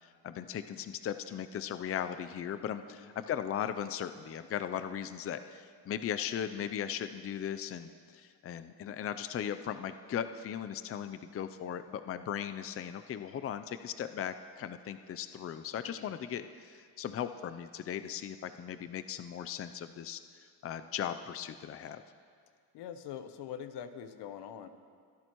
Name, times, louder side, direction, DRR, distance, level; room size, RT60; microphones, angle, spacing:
voice 1, 0.0-20.2 20.6-22.0, left 9 dB, 35° left, 10 dB, 0.5 m, -38 dB
voice 2, 22.7-24.7, left 9 dB, 80° left, 10 dB, 0.9 m, -44 dB
24.0 x 10.5 x 3.1 m, 2.1 s
cardioid pair, 100°, 40 cm